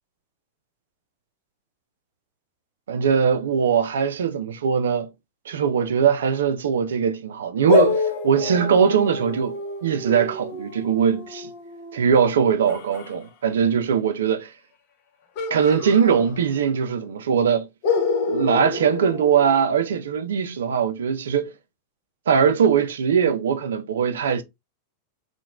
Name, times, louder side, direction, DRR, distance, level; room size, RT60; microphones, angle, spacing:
voice 1, 2.9-5.1 5.5-11.5 11.9-14.5 15.5-17.7 18.3-21.5 22.3-24.4, right 7 dB, 65° right, 0.4 m, -21 dB
sound 1, 7.7-13.1 15.4-16.8 17.1-17.2 17.8-20.0, left 4 dB, 45° left, 0.7 m, -27 dB
2.9 x 2.2 x 2.2 m
figure-of-eight pair, 90°, 0 cm